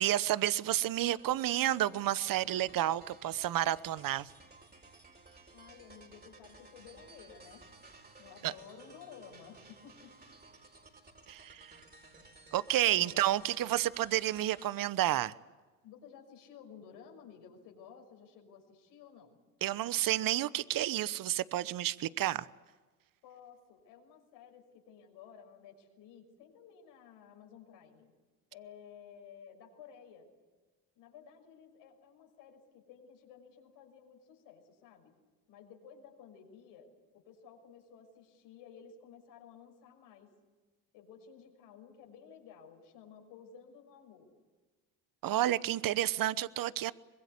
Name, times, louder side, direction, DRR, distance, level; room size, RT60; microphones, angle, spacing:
voice 1, 0.0-4.3 8.4-8.5 11.3-11.7 12.5-15.3 19.6-22.5 45.2-46.9, right 13 dB, 50° right, 1.0 m, -30 dB
sound 1, 1.0-14.7, right 3 dB, 20° right, 4.5 m, -57 dB
voice 2, 5.5-7.7 8.2-10.2 12.7-13.2 15.8-19.4 23.2-28.1 28.5-30.3 30.9-35.2 35.5-40.3 40.9-44.3, left 7 dB, 75° left, 6.3 m, -54 dB
24.5 x 21.5 x 8.5 m
supercardioid pair, 75°, 43 cm